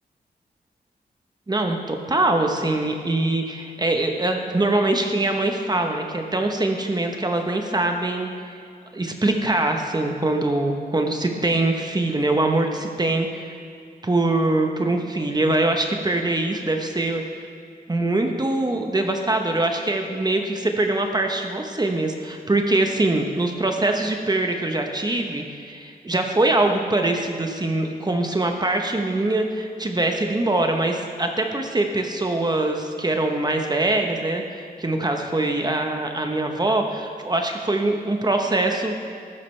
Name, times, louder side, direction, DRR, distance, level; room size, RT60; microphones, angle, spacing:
voice 1, 1.5-8.3 8.9-13.6 14.0-17.2 17.9-39.0, right 2 dB, 25° right, 3 dB, 1.0 m, -23 dB
14.0 x 12.0 x 3.3 m, 2.2 s
wide cardioid pair, 90°, 16 cm